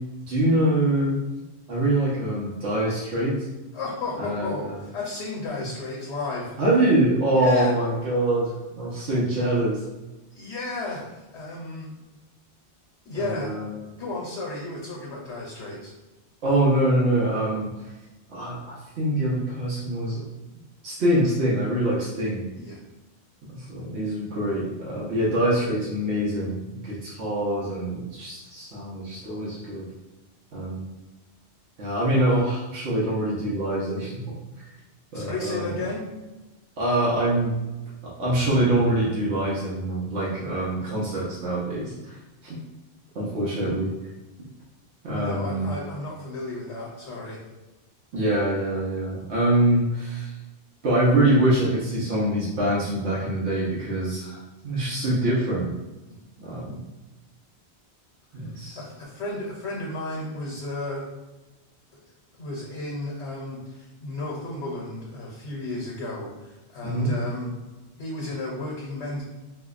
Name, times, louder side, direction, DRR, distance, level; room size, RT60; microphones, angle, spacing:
voice 1, 0.2-1.1 1.7-3.3 4.2-4.8 6.6-9.8 13.1-13.7 16.4-17.7 18.3-20.2 20.8-22.5 23.5-29.8 30.5-30.9 31.8-34.4 35.1-35.8 36.8-37.5 38.2-42.2 42.4-42.6 43.1-43.9 45.0-45.7 48.1-50.3 50.8-54.3 54.6-55.7 56.4-56.8 58.3-58.8 66.8-67.1, right 1 dB, 80° right, -7 dB, 1.2 m, -24 dB
voice 2, 3.7-6.5 7.4-7.7 10.3-12.0 13.0-13.5 14.0-15.9 22.5-22.8 35.1-36.1 45.1-47.4 56.1-56.2 58.7-61.0 61.9-62.0 62.4-67.5 68.0-69.2, left 2 dB, 85° left, -3 dB, 1.1 m, -33 dB
4.8 x 2.1 x 2.4 m, 1.1 s
omnidirectional pair, 1.1 m